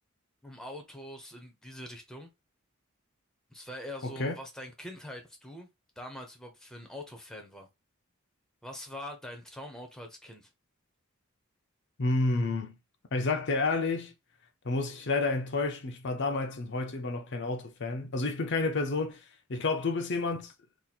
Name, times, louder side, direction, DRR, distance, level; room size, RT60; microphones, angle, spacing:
voice 1, 0.4-2.3 3.5-5.7 6.0-7.7 8.6-10.5, left 1 dB, 5° left, 0.7 m, -43 dB
voice 2, 4.0-4.3 12.0-12.8 13.1-14.1 14.6-19.2 19.5-20.5, left 3 dB, 55° left, 0.6 m, -30 dB
2.9 x 2.5 x 4.1 m
head